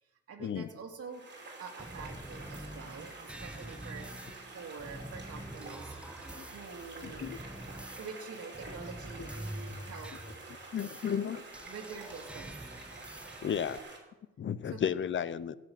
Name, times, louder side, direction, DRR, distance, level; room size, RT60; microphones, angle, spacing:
voice 1, 0.3-1.2 1.6-4.1 4.5-6.0 6.5-7.3 8.0-10.1 11.7-12.5 14.6-14.8, right 5 dB, 50° right, 2 dB, 2.2 m, -46 dB
sound 1, 1.1-14.0, right 3 dB, 35° right, 3.3 m, -48 dB
sound 2, 1.8-13.8, right 1 dB, 5° right, 0.6 m, -46 dB
voice 2, 7.0-7.4 10.7-11.4 13.4-13.8 14.4-15.6, left 8 dB, 40° left, 17 dB, 0.6 m, -33 dB
16.0 x 6.3 x 5.9 m, 1.0 s
cardioid pair, 90°, 30 cm